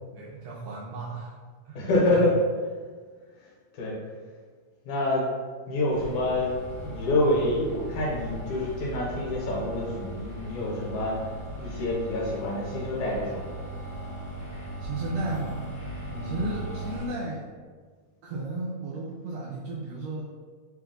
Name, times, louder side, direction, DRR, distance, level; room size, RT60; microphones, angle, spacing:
voice 1, 0.1-1.3 1.7-2.3 14.8-15.7 16.2-17.5 18.2-20.2, right 2 dB, 80° right, -5 dB, 1.5 m, -34 dB
voice 2, 1.8-2.4 3.7-4.0 4.9-5.3 5.7-6.6 6.8-11.1 11.6-13.4 16.1-16.4, left 2 dB, 75° left, -4 dB, 2.2 m, -27 dB
sound 1, 5.9-17.1, equal, 45° left, 1.1 m, -38 dB
4.8 x 2.3 x 3.8 m, 1.5 s
omnidirectional pair, 3.5 m